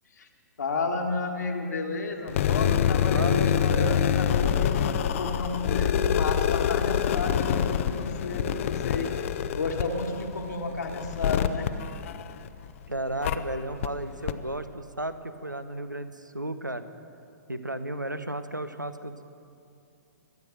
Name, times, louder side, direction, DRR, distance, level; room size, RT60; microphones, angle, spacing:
voice 1, 0.6-4.8 5.2-9.3 9.5-11.7, left 3 dB, 65° left, 2 dB, 1.9 m, -32 dB
Circuit-Bent Wiggles Guitar, 2.3-12.7 13.2-13.4 13.8-13.9 14.3-14.4, left 9 dB, 45° left, 0.6 m, -26 dB
voice 2, 3.1-3.9 12.9-16.9 17.5-19.2, right 1 dB, 90° right, 11 dB, 0.9 m, -34 dB
22.5 x 8.0 x 6.6 m, 2.5 s
figure-of-eight pair, 115°, 10 cm